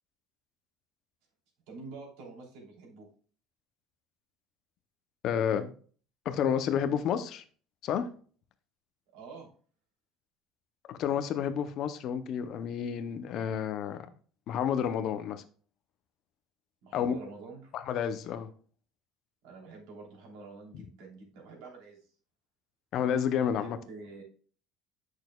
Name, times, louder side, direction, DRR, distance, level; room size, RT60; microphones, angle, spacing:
voice 1, 1.7-3.1 9.1-9.5 16.8-17.7 19.4-22.1 23.4-24.2, right 4 dB, 75° right, 3.1 m, -47 dB
voice 2, 5.2-5.7 6.3-7.4 7.8-8.1 10.9-14.1 14.5-15.4 16.9-17.2 17.7-18.5 22.9-23.8, left 8 dB, 40° left, 0.6 m, -30 dB
8.6 x 6.2 x 2.2 m
cardioid pair, 175°, 0 cm